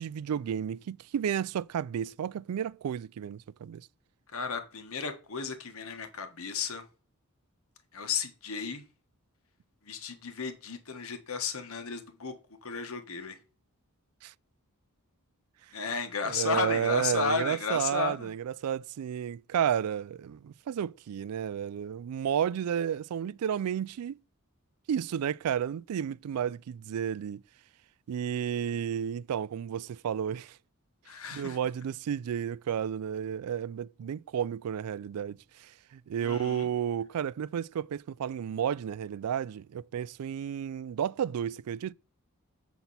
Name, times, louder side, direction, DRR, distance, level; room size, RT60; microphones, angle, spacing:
voice 1, 0.0-3.9 14.2-14.3 16.2-24.2 24.9-27.4 28.1-30.6 31.3-41.9, right 8 dB, 85° right, 0.3 m, -32 dB
voice 2, 4.3-6.8 7.9-8.8 9.8-13.4 15.7-18.3 31.0-31.6 36.2-36.7, left 5 dB, 75° left, 1.4 m, -34 dB
8.2 x 5.9 x 4.2 m
head